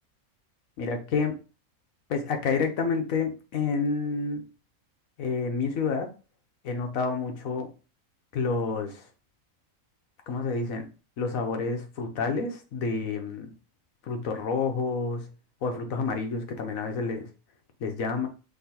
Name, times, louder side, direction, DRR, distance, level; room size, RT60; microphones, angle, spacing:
voice 1, 0.8-1.4 2.1-4.5 5.2-6.1 6.6-7.7 8.3-9.0 10.3-10.9 11.2-13.5 14.1-15.3 15.6-17.3 17.8-18.3, left 4 dB, 85° left, 5 dB, 1.3 m, -29 dB
5.9 x 3.1 x 2.9 m, 0.33 s
omnidirectional pair, 1.4 m